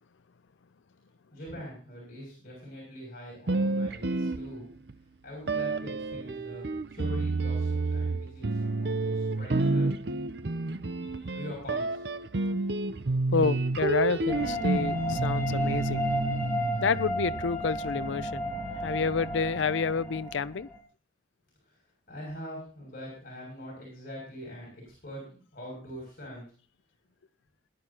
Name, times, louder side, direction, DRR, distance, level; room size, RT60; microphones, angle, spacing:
voice 1, 1.3-4.7 5.2-9.9 11.3-12.0 21.7-25.2 25.5-26.5, equal, 50° left, 6.9 m, -43 dB
sound 1, 3.5-4.9 5.5-17.7, right 3 dB, 55° right, 0.6 m, -30 dB
voice 2, 13.3-16.0 16.8-18.4 18.8-20.7, left 5 dB, 75° left, 0.5 m, -29 dB
sound 2, 14.3-20.8, equal, 15° left, 2.8 m, -33 dB
20.5 x 11.5 x 2.9 m
head